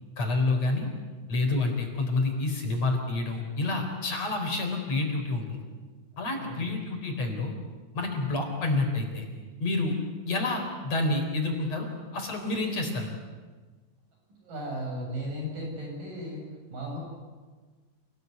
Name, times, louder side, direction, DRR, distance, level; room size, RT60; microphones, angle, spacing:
voice 1, 0.2-0.9 1.3-5.6 6.2-7.5 7.9-9.3 9.6-9.9 10.3-11.9 12.1-13.1, left 2 dB, 50° left, 3 dB, 5.4 m, -28 dB
voice 2, 6.4-6.7 14.4-17.0, equal, 85° right, 0 dB, 9.5 m, -36 dB
28.5 x 20.0 x 9.6 m, 1.4 s
omnidirectional pair, 3.7 m